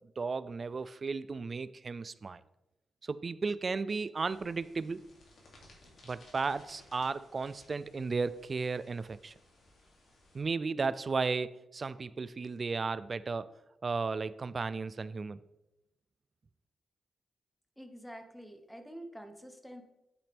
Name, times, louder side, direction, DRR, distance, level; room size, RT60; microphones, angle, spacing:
voice 1, 0.2-2.4 3.0-5.1 6.0-9.3 10.3-13.5 13.8-15.4, right 4 dB, 35° right, 16 dB, 0.4 m, -34 dB
sound 1, 4.1-10.4, left 1 dB, 55° left, 2.8 m, -60 dB
voice 2, 17.8-19.8, equal, ahead, 6 dB, 0.9 m, -47 dB
8.7 x 8.1 x 3.5 m, 0.92 s
wide cardioid pair, 145°, 0 cm